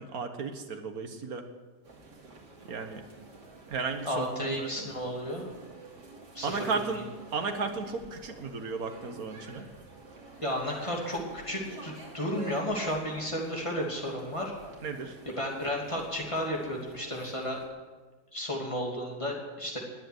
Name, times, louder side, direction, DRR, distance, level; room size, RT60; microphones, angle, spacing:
voice 1, 0.0-1.5 2.6-3.0 3.7-4.9 6.4-7.0 7.3-9.7 14.8-15.2, right 4 dB, 60° right, 6 dB, 1.8 m, -34 dB
sound 1, 1.8-17.7, right 3 dB, 80° right, 3.2 m, -50 dB
voice 2, 4.0-5.4 6.3-6.6 10.4-14.5 15.3-17.6 18.3-19.8, equal, 20° left, -1 dB, 2.8 m, -33 dB
20.5 x 7.9 x 7.9 m, 1.3 s
omnidirectional pair, 1.8 m